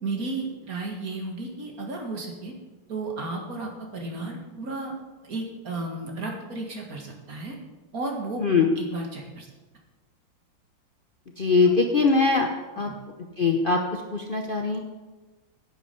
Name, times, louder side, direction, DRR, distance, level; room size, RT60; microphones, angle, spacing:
voice 1, 0.0-2.5 2.9-5.0 5.2-7.5 7.9-8.4 8.8-9.5 11.6-11.8, right 3 dB, 45° right, 1 dB, 2.3 m, -33 dB
voice 2, 11.4-12.5 12.8-12.9 13.4-14.8, left 4 dB, 85° left, 2 dB, 0.4 m, -22 dB
10.0 x 8.5 x 6.9 m, 1.2 s
omnidirectional pair, 2.3 m